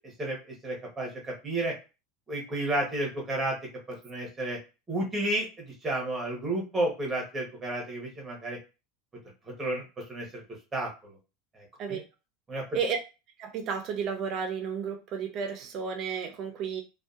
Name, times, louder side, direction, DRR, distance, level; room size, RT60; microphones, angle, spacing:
voice 1, 0.6-1.7 2.3-3.6 4.0-4.6 4.9-8.6 9.6-9.8 10.1-10.4 10.7-11.2 11.6-12.0 12.5-12.6, right 1 dB, 10° right, -1 dB, 0.9 m, -31 dB
voice 2, 13.4-16.8, right 6 dB, 35° right, 4 dB, 0.5 m, -32 dB
2.6 x 2.2 x 2.3 m, 0.29 s
supercardioid pair, 165°, 0 cm